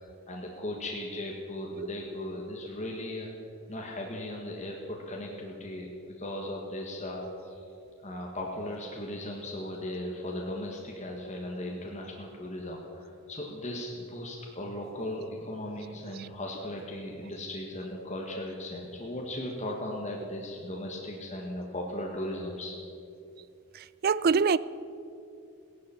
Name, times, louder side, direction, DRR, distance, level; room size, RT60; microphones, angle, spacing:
voice 1, 0.0-3.3 3.7-5.9 6.2-7.6 8.0-22.7, left 1 dB, 30° left, -1 dB, 1.5 m, -37 dB
voice 2, 24.0-24.6, right 5 dB, 45° right, 18 dB, 0.3 m, -23 dB
16.0 x 11.5 x 7.1 m, 2.7 s
head